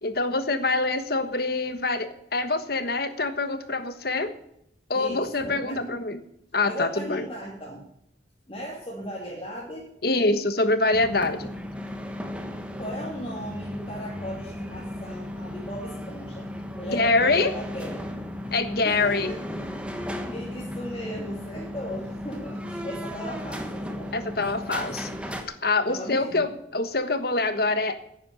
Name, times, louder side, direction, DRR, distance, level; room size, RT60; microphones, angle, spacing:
voice 1, 0.0-4.3 4.9-6.2 6.5-7.3 10.0-11.5 16.9-17.5 18.5-19.3 24.1-25.1 25.6-28.0, left 3 dB, 55° left, 10 dB, 1.4 m, -25 dB
voice 2, 4.9-6.0 6.6-7.8 8.5-9.9 12.8-16.5 16.8-18.1 18.8-19.4 20.3-24.9 25.8-26.5, equal, 30° left, -4 dB, 2.8 m, -37 dB
sound 1, 10.9-25.4, left 1 dB, 5° right, 1.3 m, -35 dB
10.5 x 9.7 x 9.4 m, 0.73 s
head